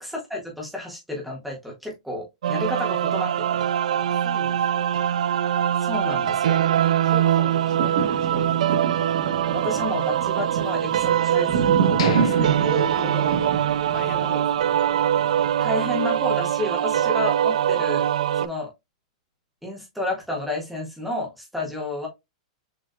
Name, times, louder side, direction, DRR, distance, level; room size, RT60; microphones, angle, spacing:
voice 1, 0.0-3.7 5.8-6.6 9.5-12.6 15.6-18.1 18.4-18.7 19.6-22.1, left 1 dB, ahead, 1.6 m, -31 dB
sound 1, 2.4-18.5, right 10 dB, 80° right, 0.3 m, -23 dB
voice 2, 4.0-4.9 6.9-8.9 12.6-14.7, left 4 dB, 20° left, 1.5 m, -38 dB
sound 2, 7.4-15.6 16.1-16.2, right 6 dB, 55° right, 1.1 m, -28 dB
sound 3, 12.0-13.9 14.2-14.3 14.9-15.0, left 8 dB, 65° left, 1.0 m, -35 dB
6.6 x 3.4 x 2.2 m
supercardioid pair, 170°, 4 cm